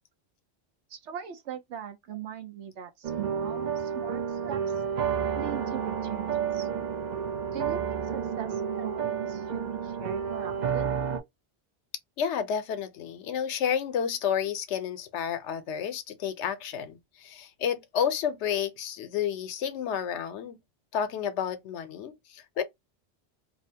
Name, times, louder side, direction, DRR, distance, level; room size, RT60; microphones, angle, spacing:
voice 1, 0.9-4.6 5.3-6.7 7.5-11.0, right 9 dB, 85° right, 1.0 m, -40 dB
sound 1, 3.0-11.2, right 7 dB, 55° right, 0.5 m, -30 dB
voice 2, 12.2-20.6 20.9-22.6, left 8 dB, 80° left, 0.9 m, -31 dB
2.7 x 2.0 x 2.7 m
omnidirectional pair, 1.2 m